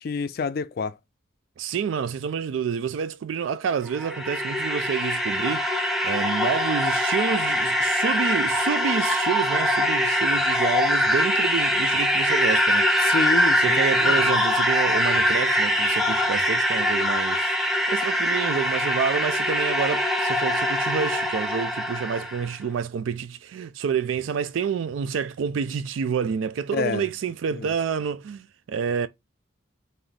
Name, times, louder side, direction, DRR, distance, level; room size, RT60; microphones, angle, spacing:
voice 1, 0.0-1.0 13.0-14.3 26.7-27.1 27.5-27.7, left 4 dB, 50° left, 0.3 m, -28 dB
voice 2, 1.6-13.1 13.6-17.5 17.9-29.1, right 6 dB, 80° right, 0.3 m, -28 dB
sound 1, 3.8-22.5, equal, ahead, 0.5 m, -23 dB
3.9 x 2.6 x 3.3 m
head